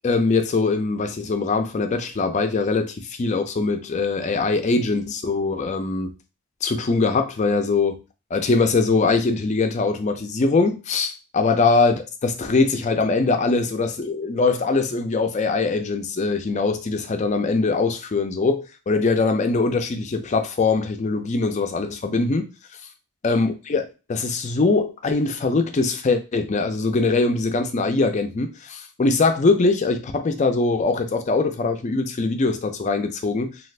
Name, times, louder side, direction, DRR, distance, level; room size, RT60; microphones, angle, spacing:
voice 1, 0.0-6.2 6.6-8.0 8.3-11.9 12.2-22.5 23.2-33.6, left 3 dB, 30° left, 0.3 m, -22 dB
2.4 x 2.3 x 3.2 m
head